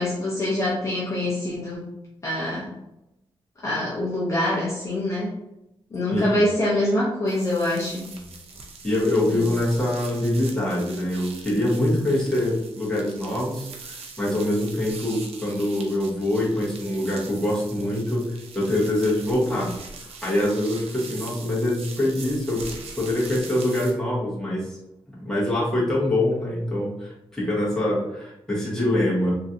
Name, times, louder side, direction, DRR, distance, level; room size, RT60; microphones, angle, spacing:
voice 1, 0.0-1.8 2.2-2.7 3.6-5.3 5.9-8.0 9.3-9.4, left 1 dB, 30° left, -6 dB, 0.6 m, -25 dB
voice 2, 6.1-6.4 8.1-8.3 8.8-19.7 20.2-22.6 22.9-24.6 25.2-29.3, left 1 dB, 5° left, -8 dB, 1.1 m, -24 dB
sound 1, 7.3-23.9, right 4 dB, 85° right, 0.5 m, -42 dB
3.1 x 2.7 x 2.5 m, 0.87 s
wide cardioid pair, 175°, 10 cm